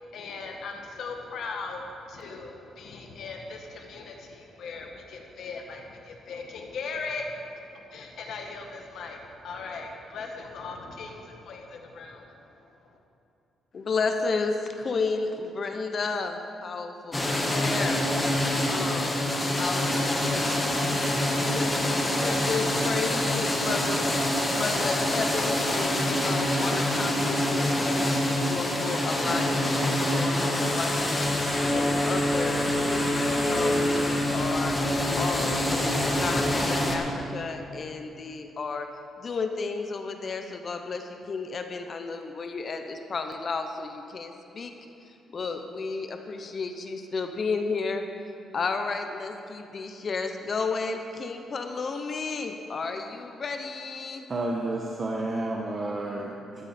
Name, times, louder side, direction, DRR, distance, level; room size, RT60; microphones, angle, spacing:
voice 1, 0.0-13.0, left 4 dB, 70° left, 2 dB, 1.7 m, -39 dB
voice 2, 13.7-18.0 18.7-19.1 19.6-20.2 21.5-24.1 24.5-28.2 28.5-31.3 31.7-34.7 35.2-38.9 39.2-44.7 45.3-48.1 48.5-54.3, left 4 dB, 45° left, 6 dB, 0.9 m, -32 dB
sound 1, 17.1-37.0, left 1 dB, 20° left, 1.7 m, -26 dB
voice 3, 54.3-56.6, right 2 dB, 35° right, -1 dB, 1.1 m, -31 dB
13.5 x 12.0 x 4.4 m, 2.6 s
cardioid pair, 100°, 0 cm